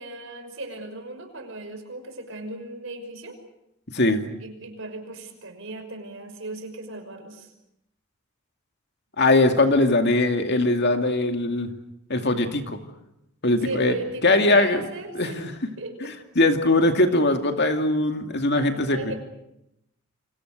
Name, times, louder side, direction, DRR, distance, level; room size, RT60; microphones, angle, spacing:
voice 1, 0.0-3.4 4.4-7.5 13.6-15.4 15.8-16.1 18.9-19.1, right 2 dB, 60° right, 7 dB, 5.7 m, -36 dB
voice 2, 3.9-4.2 9.2-11.7 12.1-12.8 13.4-13.9 14.2-14.8 15.1-15.3 16.0-19.1, left 2 dB, 50° left, 6 dB, 2.5 m, -21 dB
29.0 x 26.0 x 6.6 m, 0.84 s
head